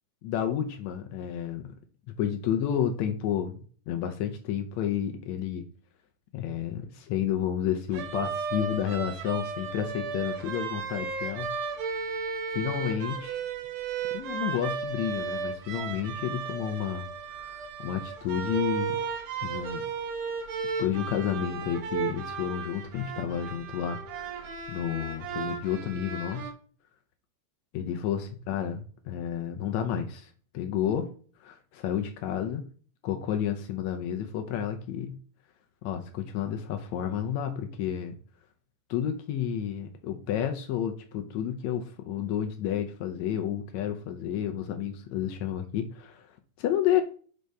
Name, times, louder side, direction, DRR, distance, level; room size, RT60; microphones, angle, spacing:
voice 1, 0.2-1.7 2.2-5.6 6.3-11.5 11.8-12.0 12.5-13.5 14.1-17.1 17.4-19.0 19.4-19.9 20.6-26.5 27.7-31.1 31.4-32.7 33.0-35.2 35.8-38.2 38.9-47.0, left 9 dB, 75° left, 6 dB, 1.7 m, -31 dB
sound 1, 7.9-26.5, right 5 dB, 70° right, 2.0 m, -34 dB
6.4 x 5.3 x 3.4 m, 0.43 s
omnidirectional pair, 3.6 m